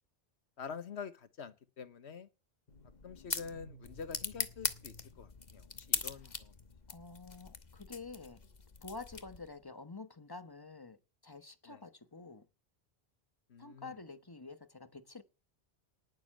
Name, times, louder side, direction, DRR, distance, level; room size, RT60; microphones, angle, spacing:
voice 1, 0.6-2.3 3.0-6.5 11.7-11.8 13.5-14.0, left 6 dB, 85° left, 1.4 m, -47 dB
sound 1, 2.7-9.6, left 4 dB, 45° left, 1.2 m, -41 dB
voice 2, 6.9-8.4 8.8-11.0 11.2-12.5 13.6-15.2, left 3 dB, 20° left, 1.2 m, -48 dB
19.0 x 7.1 x 7.7 m
omnidirectional pair, 1.1 m